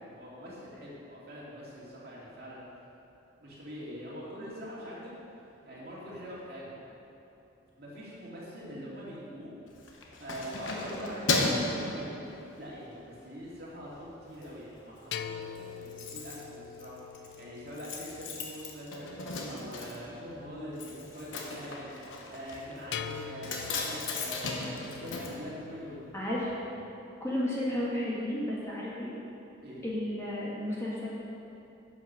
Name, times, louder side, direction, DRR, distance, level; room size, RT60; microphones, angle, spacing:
voice 1, 0.0-2.7 3.4-5.1 5.6-6.7 7.8-9.5 10.2-12.1 12.6-26.0 29.6-29.9, equal, 50° right, -7 dB, 2.5 m, -43 dB
Keys jangling, 9.7-12.8 13.2-13.4 13.8-14.5 14.8-14.9 15.1-15.2 15.4-26.2 26.5-26.6, left 2 dB, 85° left, 1.2 m, -36 dB
sound 1, 15.1-19.4 22.9-26.8, left 7 dB, 60° left, 0.4 m, -44 dB
voice 2, 26.1-26.6 27.2-29.1 29.8-31.1, left 1 dB, 15° left, -7 dB, 1.6 m, -32 dB
9.6 x 6.3 x 6.3 m, 2.9 s
head